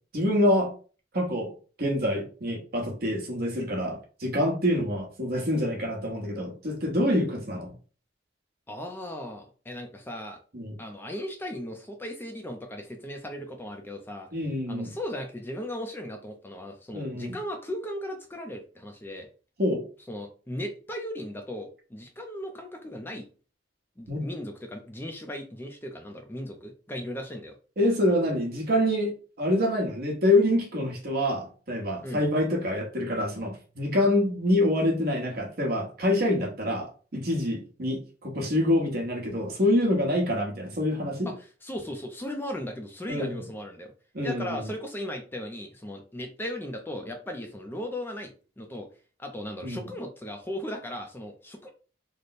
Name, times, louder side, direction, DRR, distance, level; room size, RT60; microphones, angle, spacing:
voice 1, 0.1-0.7 1.1-1.5 1.8-7.7 10.5-10.8 14.3-14.9 16.9-17.3 19.6-19.8 24.1-24.2 27.8-29.1 29.4-41.3 43.1-43.3 44.1-44.6 49.6-49.8, left 1 dB, 55° right, 0 dB, 1.1 m, -26 dB
voice 2, 8.7-10.4 10.8-14.3 14.7-19.3 20.1-23.2 24.0-27.5 32.0-32.2 41.3-43.9 44.2-48.9 49.2-51.7, left 1 dB, 10° left, 3 dB, 0.4 m, -37 dB
3.3 x 2.1 x 4.0 m, 0.38 s
head